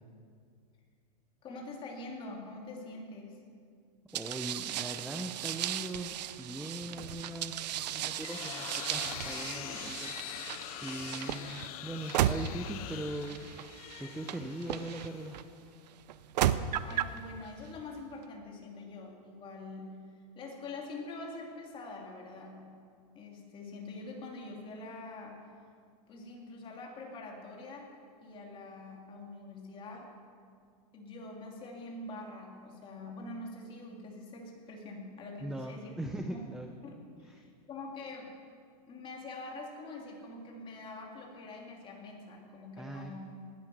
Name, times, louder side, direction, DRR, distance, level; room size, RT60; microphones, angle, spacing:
voice 1, 1.4-3.4 16.8-20.0 20.3-22.7 23.1-25.5 26.1-27.9 28.2-30.1 30.9-35.9 36.3-36.4 36.8-38.4 38.9-43.2, left 2 dB, 25° left, 0 dB, 2.8 m, -45 dB
voice 2, 4.1-10.1 10.8-15.4 35.4-36.7 42.8-43.2, right 1 dB, ahead, 4 dB, 0.5 m, -40 dB
sound 1, 4.1-15.4 16.1-17.2, right 11 dB, 80° right, 0.7 m, -35 dB
sound 2, 7.8-15.7, left 16 dB, 60° left, 0.4 m, -44 dB
19.5 x 10.5 x 6.1 m, 2.2 s
supercardioid pair, 155°, 21 cm